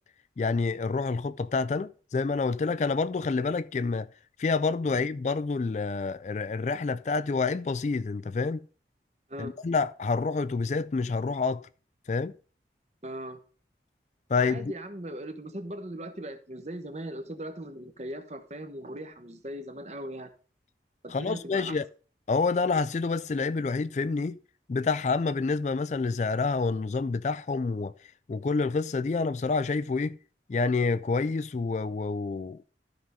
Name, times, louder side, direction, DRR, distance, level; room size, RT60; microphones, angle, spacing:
voice 1, 0.4-4.1 4.4-8.6 9.4-11.6 12.1-12.3 14.3-14.7 21.1-21.8 22.3-24.4 24.7-27.9 28.3-30.2 30.5-32.6, left 4 dB, 40° left, 0.3 m, -28 dB
voice 2, 13.0-13.4 14.4-20.3 21.0-21.8, right 1 dB, 40° right, 1.1 m, -39 dB
13.0 x 5.5 x 3.7 m
head